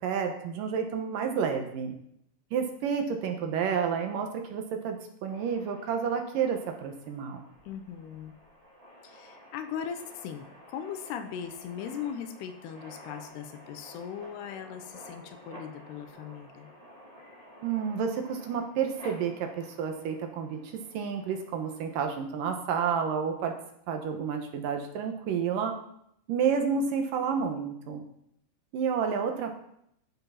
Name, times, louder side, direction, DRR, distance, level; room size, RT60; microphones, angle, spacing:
voice 1, 0.0-1.9 2.5-7.4 17.6-23.5 23.9-25.7 26.3-28.0 28.7-29.6, right 6 dB, 70° right, 4 dB, 2.4 m, -30 dB
sound 1, 5.3-22.2, equal, 10° right, 2.4 m, -51 dB
voice 2, 7.6-8.3 9.0-16.7, left 8 dB, 80° left, 8 dB, 2.8 m, -39 dB
12.5 x 7.5 x 5.8 m, 0.74 s
omnidirectional pair, 4.8 m